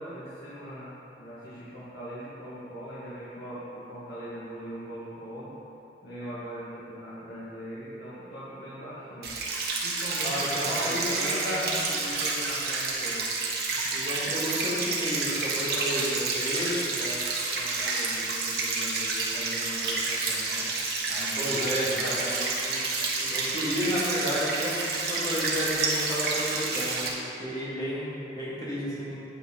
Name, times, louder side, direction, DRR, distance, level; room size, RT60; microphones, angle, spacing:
voice 1, 0.0-5.6 6.0-9.4 9.8-13.3 13.8-14.0 16.7-17.3 17.5-20.7 21.1-22.2, equal, 80° left, -11 dB, 1.8 m, -40 dB
sound 1, 9.2-27.1, right 3 dB, 65° right, 1.3 m, -29 dB
voice 2, 10.2-11.7 13.9-16.7 21.4-22.8 23.2-29.2, equal, 20° left, -8 dB, 2.1 m, -32 dB
8.7 x 8.3 x 3.8 m, 2.9 s
head